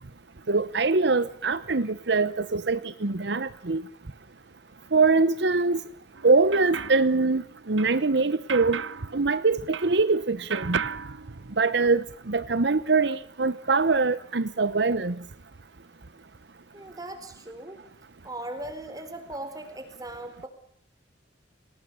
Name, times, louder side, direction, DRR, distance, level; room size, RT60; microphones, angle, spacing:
voice 1, 0.5-3.8 4.9-5.8 6.2-8.8 9.1-10.8 11.6-15.2, right 3 dB, 65° right, 14 dB, 1.0 m, -23 dB
sound 1, 6.1-10.2 10.5-12.0, right 6 dB, 90° right, 1.0 m, -36 dB
voice 2, 16.7-17.8 18.2-20.5, right 1 dB, 20° right, 9 dB, 4.4 m, -38 dB
28.5 x 19.0 x 7.0 m, 0.65 s
head